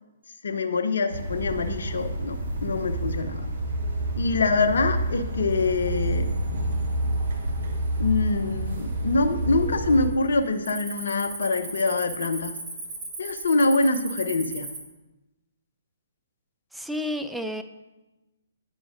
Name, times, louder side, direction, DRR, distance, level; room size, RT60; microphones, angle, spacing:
voice 1, 0.4-3.5 4.2-6.4 8.0-12.6 13.2-14.7, left 3 dB, 65° left, 8 dB, 0.7 m, -25 dB
sound 1, 1.1-10.1, right 1 dB, 55° right, 1.2 m, -28 dB
Cricket, 5.8-6.3 6.7-7.1 7.7-7.8 8.5-9.1 9.3-9.6 9.9-14.8, right 3 dB, 25° right, 1.6 m, -37 dB
voice 2, 16.7-17.6, left 1 dB, ahead, 7 dB, 0.4 m, -30 dB
8.9 x 5.0 x 3.8 m, 1.0 s
figure-of-eight pair, 125°, 0 cm